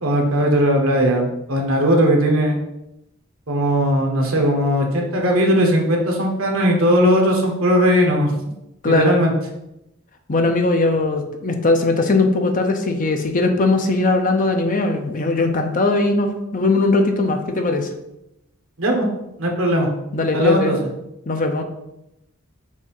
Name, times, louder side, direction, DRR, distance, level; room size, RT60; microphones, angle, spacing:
voice 1, 0.0-2.6 3.5-8.3 8.9-9.3 18.8-19.1 19.4-19.9 20.3-20.8, equal, 65° right, 1 dB, 1.3 m, -18 dB
voice 2, 8.8-9.2 10.3-17.9 20.1-20.8 21.3-21.6, left 3 dB, 40° left, 5 dB, 0.7 m, -19 dB
6.4 x 2.7 x 5.4 m, 0.86 s
head